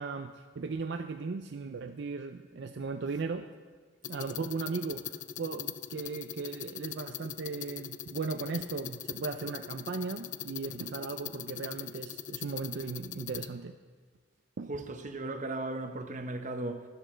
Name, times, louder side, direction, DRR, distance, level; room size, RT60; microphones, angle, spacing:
voice 1, 0.0-3.5 4.1-13.8 14.6-14.7, right 4 dB, 65° right, 0.5 m, -37 dB
sound 1, 4.0-13.5, left 10 dB, 45° left, 0.3 m, -41 dB
voice 2, 14.7-16.9, right 2 dB, 45° right, 1.0 m, -36 dB
12.5 x 10.5 x 4.4 m
head